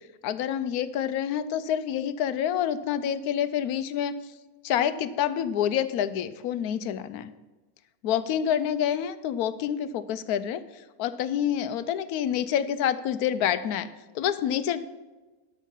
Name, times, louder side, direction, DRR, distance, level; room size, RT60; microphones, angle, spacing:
voice 1, 0.2-4.1 4.6-7.3 8.0-10.6 11.0-13.9 14.1-14.8, left 9 dB, 90° left, 13 dB, 1.1 m, -27 dB
12.0 x 6.4 x 5.5 m, 1.2 s
omnidirectional pair, 1.6 m